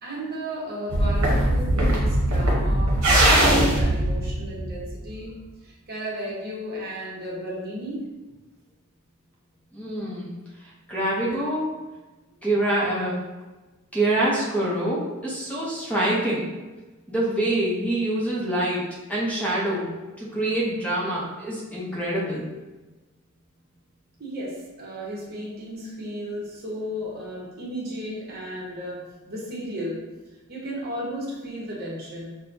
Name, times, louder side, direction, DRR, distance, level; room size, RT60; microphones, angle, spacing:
voice 1, 0.0-5.3 5.6-8.1 24.2-30.0 30.5-32.4, equal, 45° right, -5 dB, 1.0 m, -34 dB
sound 1, 0.9-5.1, right 1 dB, 75° right, 1.0 m, -20 dB
voice 2, 9.7-10.3 10.9-11.7 12.4-13.2 13.9-16.5 17.1-19.9 20.2-22.5, right 1 dB, 5° left, -6 dB, 0.7 m, -25 dB
6.0 x 2.2 x 2.7 m, 1.2 s
head